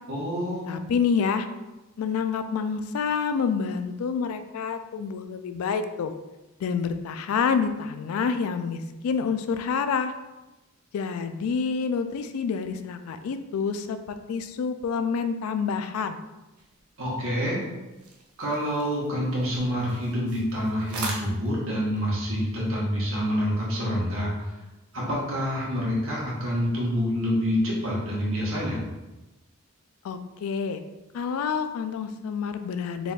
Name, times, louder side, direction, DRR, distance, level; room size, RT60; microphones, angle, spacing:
voice 1, 0.1-0.8 17.0-17.6 18.4-24.5 24.9-28.8, equal, 65° right, -5 dB, 1.3 m, -27 dB
voice 2, 0.7-1.5 2.0-6.1 6.6-10.1 10.9-16.2 30.0-30.8 31.1-33.1, left 6 dB, 75° left, 9 dB, 0.3 m, -28 dB
sound 1, 16.6-22.1, right 3 dB, 85° right, 0.7 m, -41 dB
4.0 x 3.5 x 2.4 m, 1.0 s
head